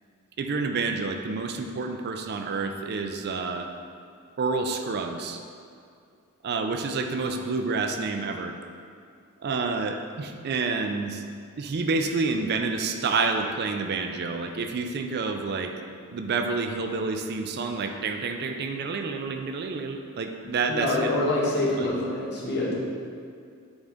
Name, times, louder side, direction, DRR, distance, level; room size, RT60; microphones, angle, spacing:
voice 1, 0.4-3.7 4.4-5.4 6.4-8.6 9.4-11.2 11.6-15.7 16.1-21.2 21.8-21.9, right 4 dB, 45° right, 5 dB, 0.4 m, -29 dB
voice 2, 20.7-22.7, left 1 dB, 50° left, -5 dB, 1.4 m, -26 dB
8.7 x 3.9 x 3.6 m, 2.4 s
head